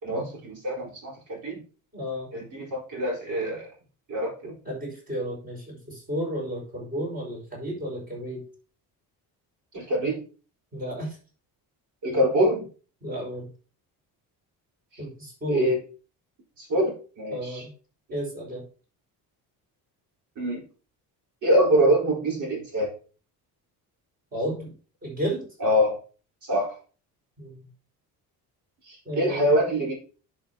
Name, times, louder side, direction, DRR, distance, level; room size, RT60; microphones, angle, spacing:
voice 1, 0.0-1.6 2.3-3.7 4.1-4.5 9.7-10.2 12.0-12.6 15.5-15.8 16.6-17.6 20.4-20.6 21.4-22.9 25.6-26.0 26.4-26.7 28.9-29.9, equal, 50° right, -2 dB, 4.4 m, -24 dB
voice 2, 1.9-2.3 4.6-8.4 10.7-11.2 13.0-13.5 15.0-15.7 17.3-17.7 18.1-18.6 24.3-24.7 25.0-25.5 27.4-27.6 29.1-29.5, equal, 25° right, -2 dB, 5.1 m, -32 dB
10.5 x 6.6 x 2.9 m, 0.37 s
cardioid pair, 170°, 38 cm